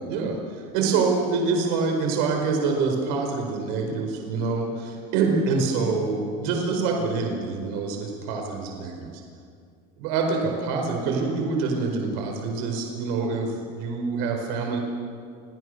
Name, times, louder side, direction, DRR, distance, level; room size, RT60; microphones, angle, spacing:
voice 1, 0.1-0.4 0.7-9.1 10.0-14.8, right 4 dB, 65° right, 2 dB, 4.7 m, -26 dB
29.5 x 24.5 x 6.6 m, 2.3 s
cardioid pair, 175°, 19 cm